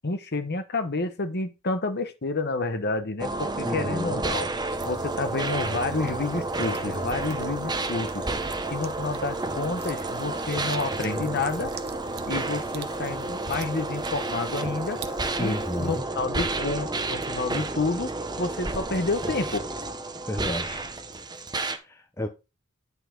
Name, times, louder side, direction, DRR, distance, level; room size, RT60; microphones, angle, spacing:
voice 1, 0.0-4.5 4.8-8.2 8.7-11.7 12.3-15.0 15.4-19.6, left 3 dB, 50° left, 1.2 m, -29 dB
sound 1, 3.2-21.8, right 2 dB, 20° right, 0.9 m, -31 dB
voice 2, 3.6-4.2 15.4-16.0 20.2-20.8 21.8-22.3, left 1 dB, 10° left, 0.7 m, -31 dB
sound 2, 4.7-16.0, right 4 dB, 50° right, 0.8 m, -45 dB
10.0 x 5.5 x 3.9 m
head